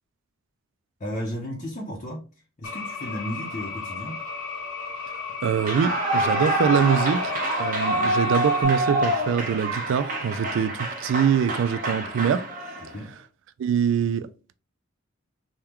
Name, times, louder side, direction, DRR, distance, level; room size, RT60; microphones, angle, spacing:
voice 1, 1.0-2.3 2.6-4.2 12.8-13.1, equal, 35° left, 0.7 m, -34 dB
sound 1, 2.6-8.6, left 5 dB, 85° left, 1.0 m, -35 dB
voice 2, 5.4-7.3 7.6-12.5 13.6-14.5, right 7 dB, 65° right, 0.3 m, -24 dB
Clapping / Cheering / Applause, 5.5-13.0, right 1 dB, 40° right, 0.9 m, -26 dB
3.5 x 2.3 x 2.9 m
head